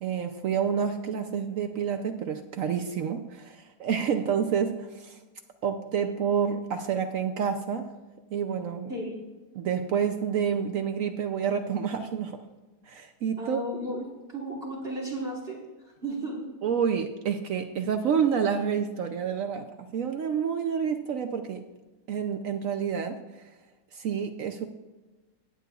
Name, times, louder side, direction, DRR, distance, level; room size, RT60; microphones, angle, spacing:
voice 1, 0.0-5.2 5.6-7.9 8.3-8.9 9.5-12.4 12.9-13.6 16.6-21.6 22.1-23.4 23.9-24.7, right 7 dB, 65° right, 7 dB, 0.8 m, -28 dB
voice 2, 13.4-15.6 16.0-16.5, right 1 dB, 40° right, -2 dB, 1.6 m, -34 dB
15.0 x 9.5 x 2.4 m, 1.2 s
omnidirectional pair, 1.8 m